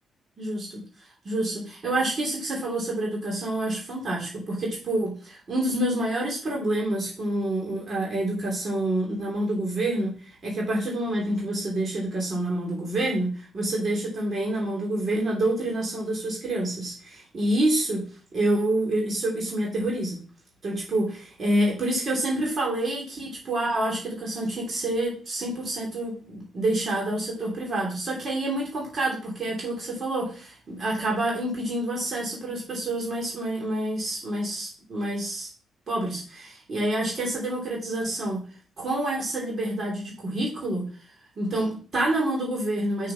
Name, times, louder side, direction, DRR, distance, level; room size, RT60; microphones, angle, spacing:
voice 1, 0.4-18.0 18.3-20.2 20.6-35.5 35.9-38.4 38.8-40.8 41.3-43.1, right 1 dB, 45° right, -3 dB, 3.5 m, -28 dB
6.3 x 5.7 x 5.9 m, 0.40 s
cardioid pair, 90°, 0 cm